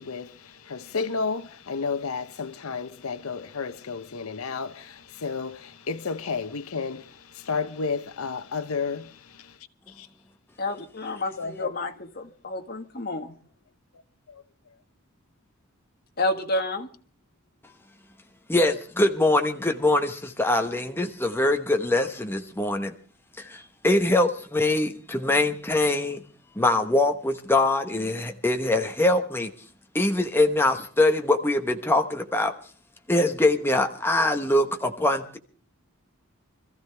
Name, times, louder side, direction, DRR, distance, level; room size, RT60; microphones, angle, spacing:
voice 1, 0.0-10.1 11.4-11.9 13.9-14.0 14.3-14.4, left 5 dB, 85° left, 0.8 m, -32 dB
voice 2, 10.6-13.3 16.2-16.9, left 2 dB, 45° left, 1.6 m, -30 dB
voice 3, 18.5-22.9 23.4-26.2 26.6-29.5 29.9-32.5 33.1-35.4, left 2 dB, 10° left, 1.0 m, -23 dB
25.5 x 14.5 x 3.4 m
head